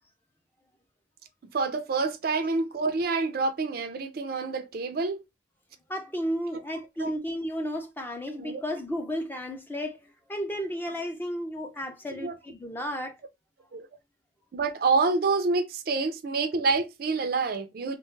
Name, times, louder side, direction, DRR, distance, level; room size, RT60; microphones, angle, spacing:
voice 1, 1.5-5.2 7.0-7.1 8.4-8.6 12.2-12.3 13.7-13.9 14.5-18.0, right 4 dB, 55° right, 0.4 m, -27 dB
voice 2, 5.9-10.0 10.3-13.2, equal, 10° left, 0.4 m, -33 dB
2.8 x 2.2 x 3.0 m
head